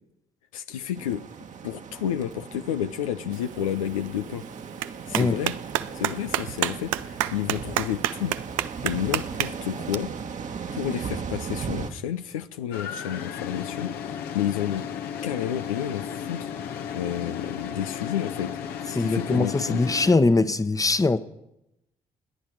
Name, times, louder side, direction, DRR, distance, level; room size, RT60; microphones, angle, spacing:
voice 1, 0.5-1.2 1.6-4.4 5.1-5.6 5.9-8.4 8.8-10.1 10.7-14.9 15.2-16.5 16.9-19.8, left 10 dB, 85° left, 0.5 m, -30 dB
sound 1, 0.9-11.9, right 6 dB, 45° right, 1.4 m, -37 dB
Clapping, 3.3-9.9, right 14 dB, 75° right, 0.5 m, -31 dB
sound 2, 12.7-20.2, left 8 dB, 65° left, 1.1 m, -34 dB
voice 2, 18.9-21.2, left 3 dB, 20° left, 1.0 m, -21 dB
28.5 x 10.0 x 4.7 m
figure-of-eight pair, 45°, 17 cm